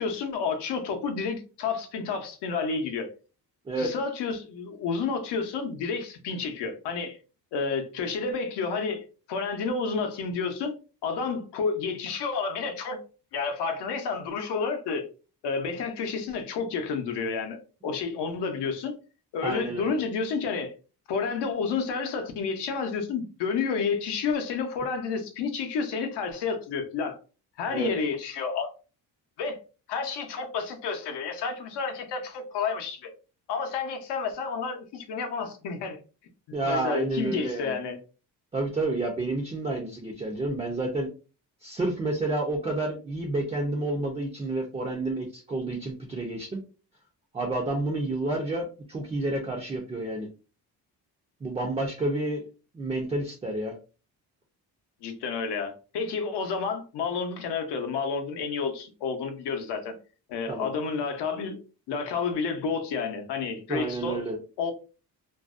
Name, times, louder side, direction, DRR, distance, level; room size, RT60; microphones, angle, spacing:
voice 1, 0.0-3.1 3.8-7.2 7.5-10.7 11.0-13.0 13.3-15.1 15.4-18.9 19.3-20.7 21.1-27.2 27.6-28.7 29.4-29.6 29.9-33.1 33.5-36.0 36.6-38.0 55.0-59.9 60.3-61.6 61.9-64.2 64.6-64.7, left 5 dB, 80° left, 0.7 m, -30 dB
voice 2, 19.4-20.0 27.7-27.9 36.5-37.8 38.5-41.1 41.6-46.6 47.3-50.3 51.4-52.4 52.7-53.7 60.5-60.7 63.7-64.4, right 2 dB, 15° right, 0.3 m, -30 dB
2.5 x 2.0 x 2.4 m
cardioid pair, 130°, 40 cm